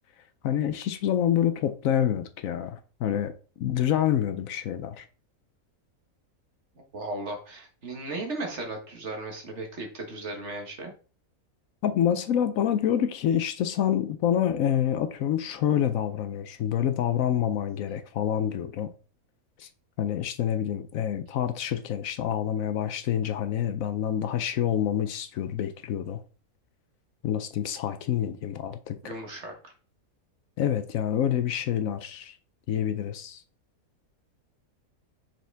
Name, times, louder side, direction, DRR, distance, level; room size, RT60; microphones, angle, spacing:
voice 1, 0.4-3.3 3.6-5.1 11.8-18.9 19.6-19.7 20.0-26.2 27.2-29.2 30.6-32.3 32.7-33.4, left 10 dB, 70° left, 1.0 m, -27 dB
voice 2, 6.9-10.9 29.0-29.7, right 2 dB, 50° right, 1.7 m, -36 dB
5.8 x 5.0 x 3.4 m
omnidirectional pair, 1.5 m